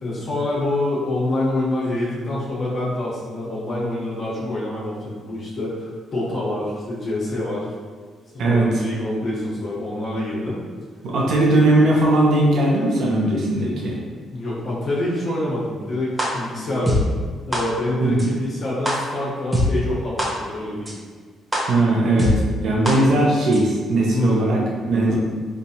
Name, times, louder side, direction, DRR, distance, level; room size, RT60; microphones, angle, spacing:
voice 1, 0.0-7.7 8.3-10.6 14.3-17.1 17.4-20.9 24.1-24.5 25.1-25.2, left 1 dB, 50° left, -6 dB, 1.0 m, -26 dB
voice 2, 8.4-8.8 11.0-14.0 18.0-18.3 21.7-22.3 22.6-25.1, right 2 dB, 70° right, -3 dB, 0.7 m, -19 dB
sound 1, 16.2-16.3 16.9-17.0 17.5-17.6 18.2-18.3 18.9-19.0 19.5-19.6 20.2-20.3 20.9-21.0 21.5-21.6 22.2-22.3 22.9-23.0 23.5-23.6, equal, 10° right, 0.8 m, -21 dB
4.5 x 2.5 x 2.8 m, 1.6 s
cardioid pair, 90°, 0 cm